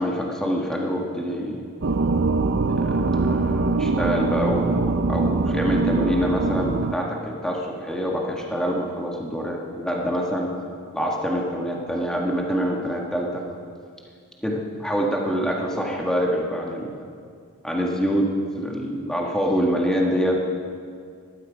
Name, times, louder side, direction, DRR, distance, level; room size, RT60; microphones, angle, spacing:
voice 1, 0.0-1.6 2.8-10.5 10.9-13.4 14.4-17.0 17.6-20.3, equal, 5° left, -1 dB, 1.6 m, -25 dB
sound 1, 1.8-6.9, right 3 dB, 55° right, 0.6 m, -23 dB
20.0 x 12.5 x 5.2 m, 2.2 s
head